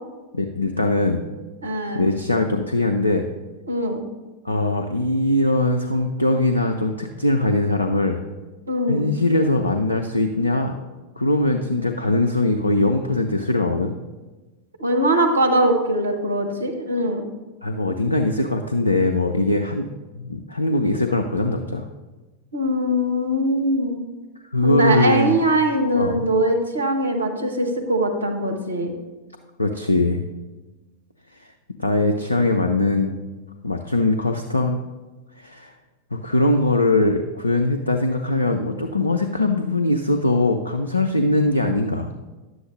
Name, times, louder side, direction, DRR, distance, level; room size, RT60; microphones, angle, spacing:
voice 1, 0.3-1.2 1.9-3.3 4.4-8.2 8.9-10.8 11.2-14.0 17.6-19.9 20.1-21.9 24.4-25.3 25.9-26.2 29.6-30.2 31.8-33.1 33.6-34.8 35.4-35.7 36.1-42.1, left 2 dB, 85° left, 5 dB, 0.5 m, -21 dB
voice 2, 1.6-2.0 3.7-4.0 8.7-9.1 14.8-17.2 22.5-24.0 24.6-28.9, right 1 dB, 80° right, 3 dB, 1.1 m, -21 dB
10.5 x 7.8 x 3.1 m, 1.2 s
figure-of-eight pair, 90°, 0 cm